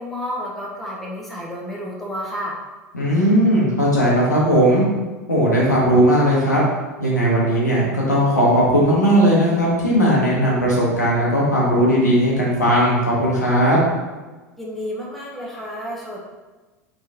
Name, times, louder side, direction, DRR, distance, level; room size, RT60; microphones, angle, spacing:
voice 1, 0.0-2.6 14.6-16.2, equal, ahead, -5 dB, 0.9 m, -30 dB
voice 2, 2.9-4.8 5.3-6.6 7.0-13.8, equal, 85° left, -5 dB, 1.2 m, -17 dB
3.7 x 3.2 x 2.8 m, 1.2 s
figure-of-eight pair, 80°, 9 cm